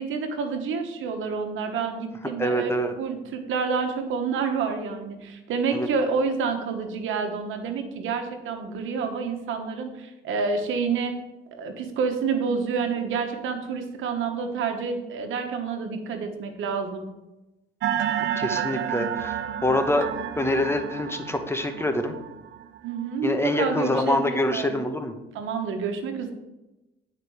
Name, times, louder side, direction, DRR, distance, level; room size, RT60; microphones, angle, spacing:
voice 1, 0.0-2.7 3.0-11.1 11.5-17.1 22.8-24.8 25.3-26.3, right 5 dB, 80° right, 6 dB, 1.3 m, -28 dB
voice 2, 2.4-2.9 5.7-5.9 18.4-20.1 20.4-22.2 23.2-25.1, left 1 dB, 10° left, 6 dB, 1.0 m, -25 dB
Granular Ceramic Bowl, 17.8-23.4, right 10 dB, 65° right, 0.6 m, -30 dB
9.7 x 5.1 x 4.8 m, 0.99 s
cardioid pair, 90°, 20 cm